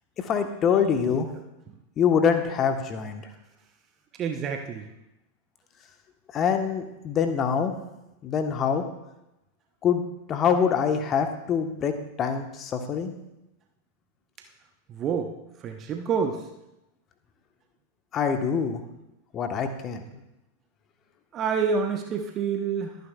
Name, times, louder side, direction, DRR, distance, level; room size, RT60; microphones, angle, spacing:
voice 1, 0.2-1.3 2.0-3.3 6.3-7.7 8.2-8.8 9.8-10.0 10.3-13.1 18.1-18.8 19.3-20.0, left 7 dB, 30° left, 6 dB, 1.2 m, -25 dB
voice 2, 4.2-4.9 14.9-15.3 15.6-16.4 21.3-23.0, right 6 dB, 30° right, 5 dB, 1.0 m, -27 dB
22.0 x 9.5 x 2.4 m, 0.90 s
figure-of-eight pair, 90°, 0 cm